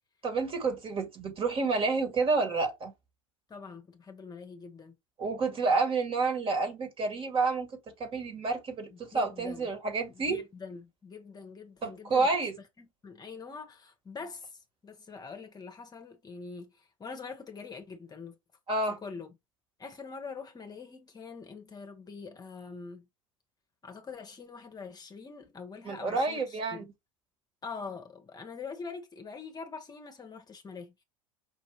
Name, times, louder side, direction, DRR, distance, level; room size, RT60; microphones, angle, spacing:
voice 1, 0.2-2.9 5.2-7.7 8.0-10.4 11.8-12.5 18.7-19.0 25.8-26.8, right 3 dB, 35° right, 1.9 m, -29 dB
voice 2, 3.5-4.9 9.1-9.7 10.3-12.3 12.8-18.4 18.9-19.3 19.8-23.1 23.8-26.8 27.6-31.0, left 5 dB, 25° left, 1.0 m, -44 dB
5.6 x 2.6 x 3.2 m
hypercardioid pair, 75°, 17 cm